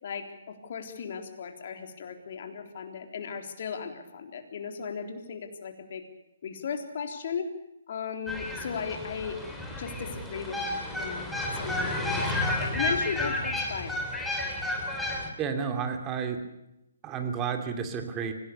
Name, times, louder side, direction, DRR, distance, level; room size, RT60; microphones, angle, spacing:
voice 1, 0.0-6.0 6.4-7.5 7.9-9.4 9.8-10.6 10.9-11.2 11.5-14.0, left 6 dB, 55° left, 5 dB, 3.8 m, -36 dB
sound 1, 8.3-15.3, left 1 dB, ahead, 3.5 m, -31 dB
voice 2, 15.4-16.4 17.0-18.3, right 6 dB, 20° right, 6 dB, 2.8 m, -31 dB
25.5 x 17.5 x 6.8 m, 0.87 s
hypercardioid pair, 155°, 0 cm